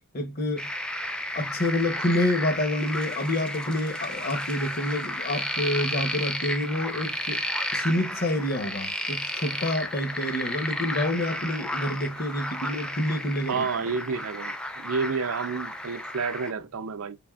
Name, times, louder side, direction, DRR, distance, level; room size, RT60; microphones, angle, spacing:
voice 1, 0.1-0.7 1.3-7.4 7.7-13.6, left 1 dB, 45° left, 0.8 m, -28 dB
sound 1, 0.6-16.5, left 1 dB, 5° left, 0.5 m, -33 dB
voice 2, 13.5-17.2, right 5 dB, 70° right, 0.5 m, -30 dB
4.9 x 3.4 x 2.3 m
head